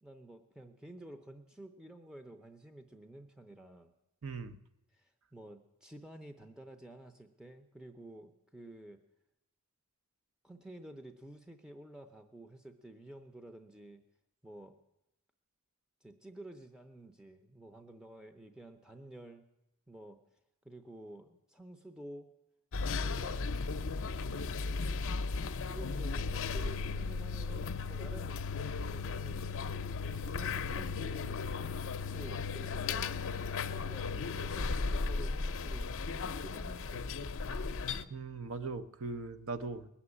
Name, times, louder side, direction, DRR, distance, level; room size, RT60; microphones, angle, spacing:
voice 1, 0.0-3.9 4.9-9.0 10.4-14.0 14.4-14.8 16.0-19.5 19.9-20.2 20.6-22.3 23.0-23.6 24.0-24.6 25.6-28.4 28.9-29.5 30.2-31.5 31.8-33.2 33.7-38.1, right 1 dB, 5° right, 6 dB, 0.6 m, -51 dB
voice 2, 4.2-4.6 38.1-39.9, right 3 dB, 65° right, 10 dB, 0.8 m, -39 dB
sound 1, 22.7-38.0, left 4 dB, 60° left, 0.6 m, -36 dB
19.5 x 7.2 x 9.8 m, 0.90 s
head